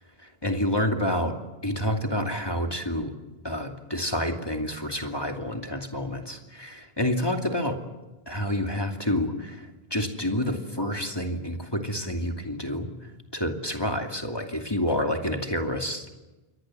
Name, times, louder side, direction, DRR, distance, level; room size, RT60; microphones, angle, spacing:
voice 1, 0.4-1.3 1.6-3.1 3.4-7.8 8.3-12.9 13.3-16.1, left 1 dB, 20° left, 4 dB, 2.7 m, -28 dB
29.0 x 23.0 x 7.6 m, 1.1 s
omnidirectional pair, 1.1 m